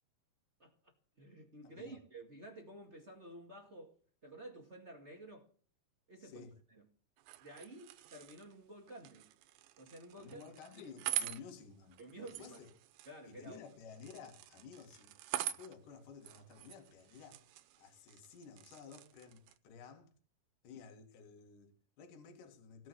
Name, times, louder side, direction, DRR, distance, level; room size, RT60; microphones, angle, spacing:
voice 1, 0.6-4.0 4.2-5.5 6.1-6.9 7.4-9.3 9.8-10.4 10.7-10.8 11.2-11.4 12.0-12.6 13.1-13.6, right 2 dB, 25° right, 1.6 m, -52 dB
voice 2, 1.6-2.0 6.2-6.5 10.2-12.7 13.3-15.1 15.4-17.4 17.8-20.1 20.6-22.9, left 6 dB, 65° left, 3.5 m, -54 dB
sound 1, 7.2-19.6, right 12 dB, 85° right, 2.6 m, -46 dB
17.0 x 6.2 x 9.8 m
omnidirectional pair, 4.2 m